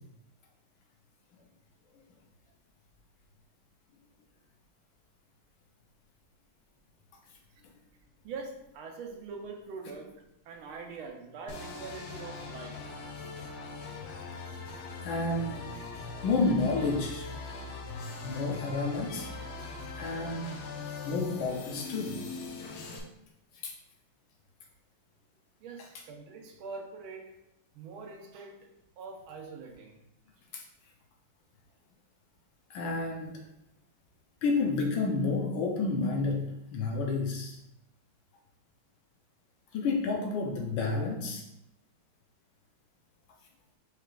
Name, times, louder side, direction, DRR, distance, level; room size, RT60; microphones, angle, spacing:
voice 1, 8.2-12.8 25.6-27.4 27.7-28.7 29.0-30.0, right 4 dB, 80° right, 3 dB, 1.5 m, -43 dB
sound 1, 11.5-23.0, left 3 dB, 90° left, 1.6 m, -41 dB
voice 2, 15.0-15.6 16.2-17.3 18.2-19.4 20.0-20.5 21.0-22.2 23.6-23.7 30.5-30.6 32.7-33.4 34.4-37.6 39.7-41.4, left 3 dB, 70° left, 1 dB, 1.4 m, -30 dB
4.9 x 4.4 x 2.4 m, 0.83 s
omnidirectional pair, 2.3 m